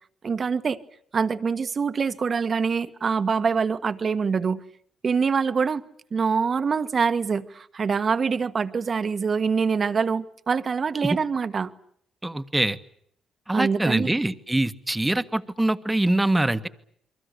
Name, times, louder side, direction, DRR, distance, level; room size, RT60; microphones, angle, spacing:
voice 1, 0.2-0.8 1.1-4.6 5.0-5.8 6.1-11.7 13.5-14.1, right 5 dB, 40° right, 1.5 m, -24 dB
voice 2, 12.2-12.8 13.5-16.7, right 1 dB, 10° right, 1.5 m, -24 dB
29.0 x 23.5 x 6.8 m
cardioid pair, 90°, 0 cm